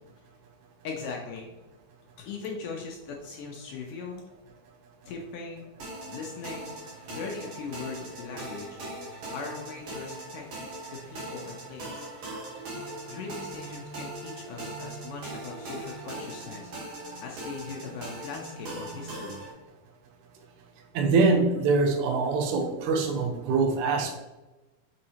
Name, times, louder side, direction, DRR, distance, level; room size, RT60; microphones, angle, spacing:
voice 1, 0.8-1.5 2.2-4.2 5.0-5.7 6.1-6.7 7.1-8.8 9.3-12.0 13.1-16.7 17.2-19.4, left 4 dB, 75° left, 0 dB, 2.1 m, -39 dB
sound 1, 5.8-19.5, right 1 dB, 55° right, 2.0 m, -40 dB
voice 2, 20.9-24.2, right 4 dB, 70° right, 3 dB, 2.1 m, -24 dB
6.4 x 5.3 x 2.9 m, 1.1 s
omnidirectional pair, 4.3 m